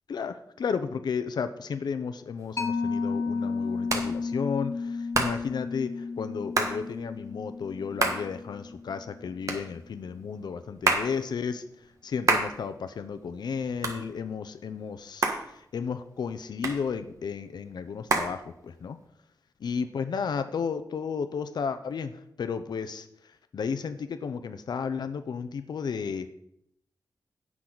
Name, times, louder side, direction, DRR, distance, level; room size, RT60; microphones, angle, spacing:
voice 1, 0.1-19.0 19.6-26.3, left 6 dB, 85° left, 10 dB, 0.7 m, -33 dB
Hands, 2.4-19.1, right 3 dB, 50° right, 1.5 m, -32 dB
Mallet percussion, 2.6-9.6, left 4 dB, 40° left, 0.9 m, -33 dB
16.5 x 6.2 x 4.0 m, 0.75 s
wide cardioid pair, 115°, 7 cm